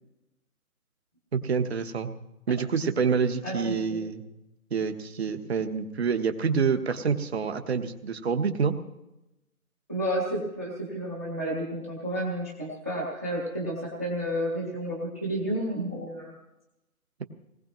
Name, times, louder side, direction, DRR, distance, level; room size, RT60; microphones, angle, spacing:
voice 1, 1.3-2.1 2.5-4.3 4.7-8.8, right 5 dB, 45° right, 7 dB, 1.2 m, -27 dB
voice 2, 3.4-4.0 9.9-16.3, right 1 dB, 10° right, -3 dB, 0.7 m, -31 dB
21.0 x 19.0 x 3.1 m, 0.94 s
hypercardioid pair, 170°, 44 cm